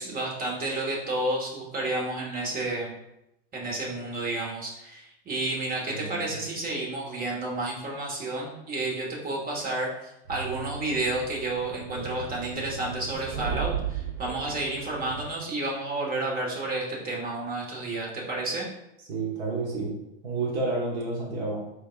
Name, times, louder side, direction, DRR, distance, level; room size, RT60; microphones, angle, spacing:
voice 1, 0.0-2.9 3.5-18.7, right 2 dB, 30° right, -2 dB, 1.4 m, -31 dB
voice 2, 5.9-6.3 19.1-20.0 20.2-21.7, right 3 dB, 60° right, -3 dB, 1.3 m, -30 dB
sound 1, 10.3-15.3, right 7 dB, 80° right, 0.6 m, -36 dB
4.6 x 3.5 x 2.3 m, 0.85 s
supercardioid pair, 110°, 31 cm